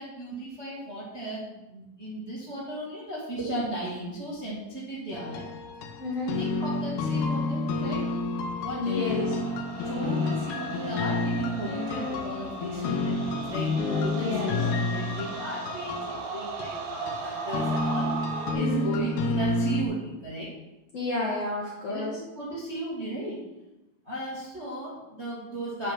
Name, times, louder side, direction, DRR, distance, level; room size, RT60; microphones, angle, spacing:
voice 1, 0.0-5.4 6.3-8.0 8.6-9.4 9.8-20.5 21.9-22.0 22.4-23.4 24.0-25.9, right 1 dB, 30° right, -6 dB, 1.3 m, -36 dB
sound 1, 5.1-19.8, left 3 dB, 80° left, 1.7 m, -30 dB
voice 2, 6.0-6.4 8.7-9.4 14.2-14.7 18.5-18.9 20.9-22.2, left 1 dB, 60° left, -3 dB, 1.8 m, -30 dB
sound 2, 9.0-18.5, right 5 dB, 90° right, 3.3 m, -37 dB
8.1 x 6.4 x 5.9 m, 0.98 s
omnidirectional pair, 4.4 m